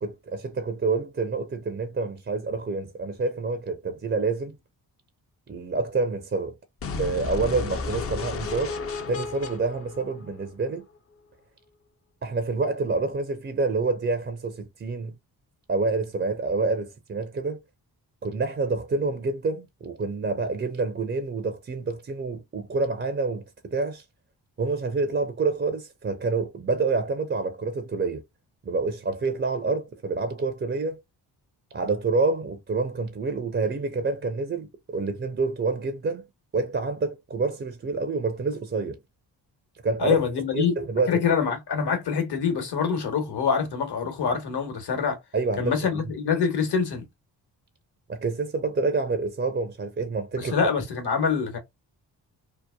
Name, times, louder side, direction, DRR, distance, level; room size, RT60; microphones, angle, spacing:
voice 1, 0.0-4.6 5.5-6.6 7.0-8.8 9.1-10.9 12.2-15.1 15.7-17.6 18.2-24.0 24.6-28.2 28.7-31.0 31.7-36.2 36.5-39.0 39.8-40.2 40.5-41.3 45.3-46.0 48.1-50.5, right 3 dB, 25° right, 0.5 m, -27 dB
sound 1, 6.8-10.8, left 4 dB, 30° left, 0.5 m, -33 dB
voice 2, 40.0-40.7 41.1-45.2 45.6-47.1 50.4-51.6, left 6 dB, 60° left, 1.2 m, -25 dB
2.9 x 2.1 x 2.2 m
supercardioid pair, 45°, 45 cm